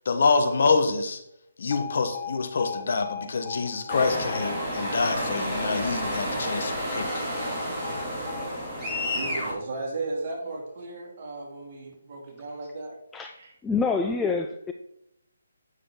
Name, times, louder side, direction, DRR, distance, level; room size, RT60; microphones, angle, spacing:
voice 1, 0.0-1.2 1.6-7.5, left 4 dB, 55° left, 7 dB, 1.1 m, -26 dB
Alarm, 1.7-9.8, left 8 dB, 35° left, 0.7 m, -40 dB
sound 1, 3.9-9.5, equal, 5° right, 2.6 m, -30 dB
voice 2, 9.1-13.0 13.4-13.5, right 3 dB, 40° right, -2 dB, 2.6 m, -35 dB
voice 3, 13.6-14.7, left 4 dB, 10° left, 4 dB, 0.4 m, -26 dB
9.1 x 6.2 x 3.7 m, 0.77 s
figure-of-eight pair, 145°, 0 cm